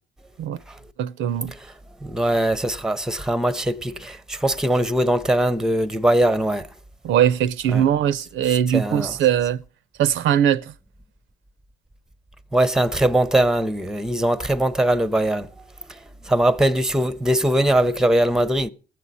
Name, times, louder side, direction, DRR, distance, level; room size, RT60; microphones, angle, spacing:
voice 1, 1.0-1.5 7.0-9.6 10.0-10.7, right 10 dB, 75° right, 0.5 m, -20 dB
voice 2, 2.0-6.7 7.7-7.8 8.7-9.1 12.5-15.5 15.9-16.0 16.3-18.7, right 1 dB, 5° right, 0.5 m, -21 dB
19.5 x 7.6 x 4.0 m
cardioid pair, 90°, 20 cm